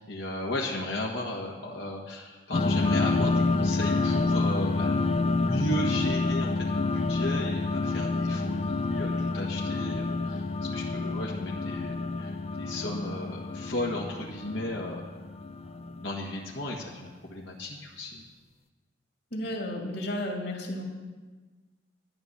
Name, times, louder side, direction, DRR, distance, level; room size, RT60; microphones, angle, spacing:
voice 1, 0.0-15.0 15.6-18.2, left 1 dB, 85° left, -2 dB, 1.6 m, -35 dB
sound 1, 2.5-16.5, left 3 dB, 35° left, 0.4 m, -28 dB
voice 2, 19.3-20.8, left 1 dB, 60° left, 0 dB, 2.5 m, -33 dB
12.5 x 10.0 x 6.8 m, 1.3 s
head